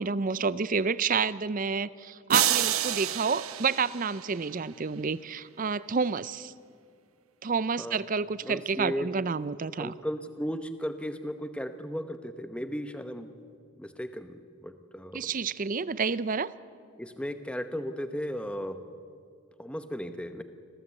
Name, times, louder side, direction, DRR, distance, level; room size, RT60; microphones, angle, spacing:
voice 1, 0.0-6.5 7.4-9.9 15.1-16.5, right 5 dB, 35° right, 18 dB, 0.5 m, -29 dB
sound 1, 2.3-4.6, right 11 dB, 70° right, 0.9 m, -29 dB
voice 2, 8.4-9.1 9.8-13.3 13.7-15.3 17.0-18.8 19.6-20.4, equal, 5° left, 9 dB, 0.9 m, -35 dB
26.0 x 16.5 x 8.3 m, 2.3 s
head